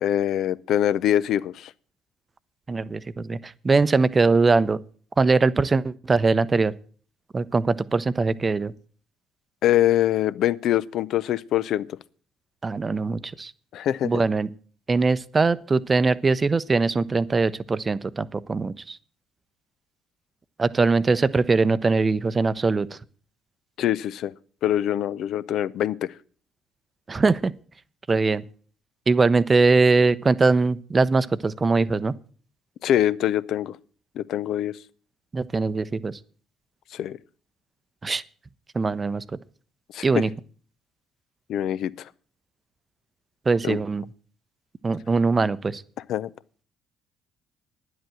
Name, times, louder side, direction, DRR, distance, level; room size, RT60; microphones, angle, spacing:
voice 1, 0.0-1.7 9.6-11.9 13.7-14.1 23.8-24.3 24.6-26.1 32.8-33.8 34.2-34.7 36.9-37.2 39.9-40.0 41.5-41.9 43.6-43.8 46.1-46.3, left 12 dB, 60° left, 0.5 m, -24 dB
voice 2, 2.7-4.8 5.2-6.7 7.3-8.7 12.6-13.5 14.0-14.5 14.9-19.0 20.6-23.0 27.1-27.5 28.1-28.4 29.1-32.1 35.3-36.2 38.0-38.2 38.7-39.4 40.0-40.3 43.5-44.0 44.8-45.8, right 4 dB, 30° right, 0.7 m, -21 dB
10.0 x 7.9 x 7.7 m
hypercardioid pair, 50°, 0 cm